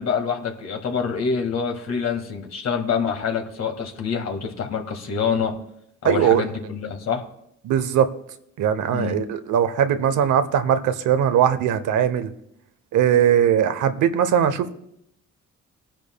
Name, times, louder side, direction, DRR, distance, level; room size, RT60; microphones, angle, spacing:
voice 1, 0.0-5.6 6.0-7.2 8.9-9.3, left 6 dB, 60° left, 3 dB, 1.9 m, -26 dB
voice 2, 6.0-6.4 7.6-8.1 8.6-12.3 12.9-14.7, right 9 dB, 75° right, 10 dB, 0.9 m, -20 dB
19.5 x 10.5 x 2.3 m, 0.76 s
cardioid pair, 90°, 30 cm